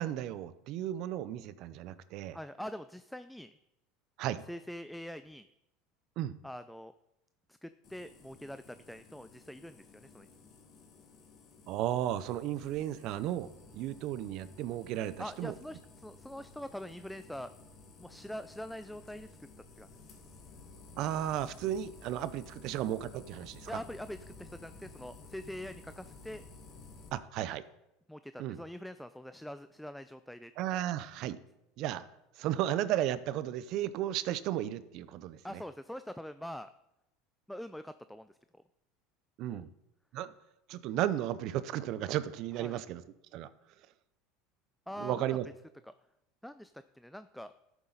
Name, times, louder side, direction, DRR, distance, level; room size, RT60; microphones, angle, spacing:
voice 1, 0.0-2.4 4.2-4.4 6.2-6.4 11.7-13.5 13.7-15.5 21.0-23.8 27.1-27.6 28.4-28.6 30.6-31.4 31.8-32.1 32.4-35.6 39.4-39.7 40.1-40.3 40.7-43.0 43.3-43.5 45.0-45.4, right 12 dB, 60° right, 15 dB, 0.6 m, -34 dB
voice 2, 2.3-3.5 4.3-5.5 6.4-6.9 7.6-10.3 15.2-17.5 18.0-19.3 19.8-19.9 23.7-26.4 28.1-30.5 35.4-36.7 37.5-38.4 39.5-39.6 42.6-42.8 44.9-45.4 45.8-45.9 46.4-47.5, equal, ahead, 11 dB, 0.3 m, -44 dB
sound 1, 7.8-27.1, left 3 dB, 45° left, 1.8 m, -54 dB
11.5 x 7.2 x 4.0 m, 0.88 s
supercardioid pair, 110°, 0 cm